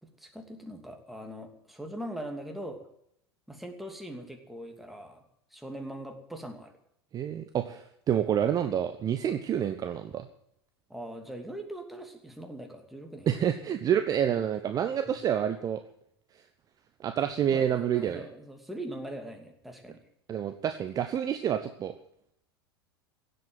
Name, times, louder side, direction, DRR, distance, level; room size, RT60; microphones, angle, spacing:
voice 1, 0.0-2.8 3.5-5.2 5.5-6.7 10.9-13.3 15.1-15.2 17.5-20.0, right 1 dB, ahead, 3 dB, 2.9 m, -41 dB
voice 2, 7.1-10.3 13.3-15.8 17.0-18.2 20.3-21.9, right 9 dB, 25° right, 8 dB, 1.0 m, -28 dB
17.0 x 8.0 x 9.4 m, 0.74 s
figure-of-eight pair, 85°, 13 cm